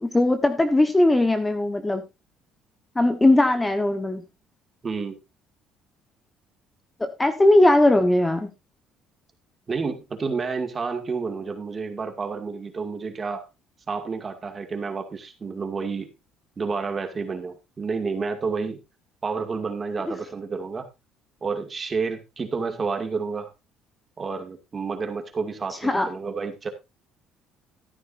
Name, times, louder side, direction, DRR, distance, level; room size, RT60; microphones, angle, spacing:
voice 1, 0.0-2.0 2.9-4.2 7.0-8.5 25.8-26.1, left 1 dB, 10° left, 8 dB, 1.2 m, -19 dB
voice 2, 4.8-5.2 9.7-13.4 13.9-16.1 16.6-18.8 19.2-20.9 21.4-23.5 24.2-26.7, right 4 dB, 30° right, 6 dB, 2.2 m, -30 dB
13.5 x 11.0 x 2.6 m, 0.24 s
cardioid pair, 115°, 0 cm